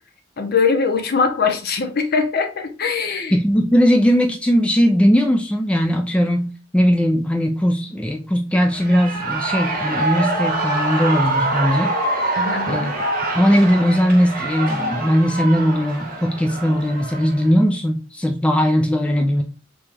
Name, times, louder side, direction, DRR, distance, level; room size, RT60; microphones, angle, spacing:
voice 1, 0.4-3.4 12.3-13.0, left 5 dB, 50° left, 0.6 m, -21 dB
voice 2, 3.3-12.0 12.7-12.9 13.3-19.4, equal, 5° left, 0.3 m, -18 dB
Shout / Cheering, 8.6-17.5, right 2 dB, 45° right, 0.9 m, -25 dB
3.4 x 3.0 x 3.2 m
head